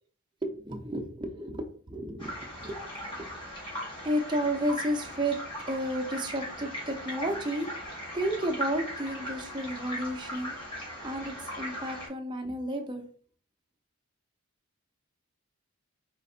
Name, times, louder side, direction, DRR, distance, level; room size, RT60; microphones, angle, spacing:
voice 1, 0.4-2.3 2.6-2.8 3.1-3.3 4.0-5.4 5.7-7.7 8.1-10.5 11.0-13.1, right 1 dB, 20° right, 4 dB, 0.5 m, -32 dB
sound 1, 2.2-12.1, equal, 20° left, 1.8 m, -39 dB
4.1 x 4.0 x 2.5 m, 0.44 s
head